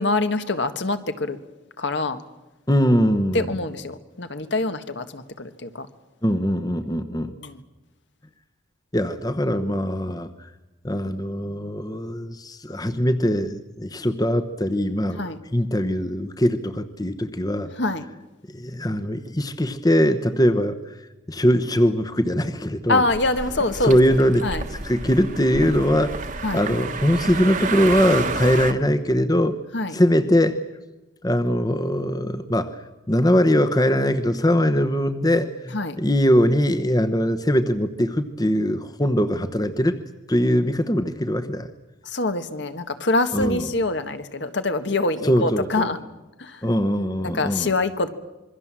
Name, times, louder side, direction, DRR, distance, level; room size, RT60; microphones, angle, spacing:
voice 1, 0.0-1.4 1.8-2.2 3.3-5.9 6.8-7.6 15.1-15.4 17.8-18.0 22.9-24.0 24.4-24.6 26.4-26.6 29.7-29.9 35.7-36.0 42.0-46.0 46.4-46.6 47.2-48.1, left 2 dB, 65° left, 9 dB, 1.5 m, -25 dB
voice 2, 2.7-3.5 6.2-7.3 8.9-10.3 10.8-15.2 15.5-17.7 18.5-20.8 21.3-23.0 23.8-24.5 24.8-26.2 26.5-29.6 29.9-30.6 31.2-32.8 33.1-40.0 40.3-41.7 43.3-43.7 45.2-45.9 46.6-47.7, equal, 20° left, 10 dB, 1.0 m, -21 dB
sound 1, 23.1-28.7, right 4 dB, 40° right, 1.3 m, -30 dB
26.5 x 22.5 x 7.5 m, 1.1 s
head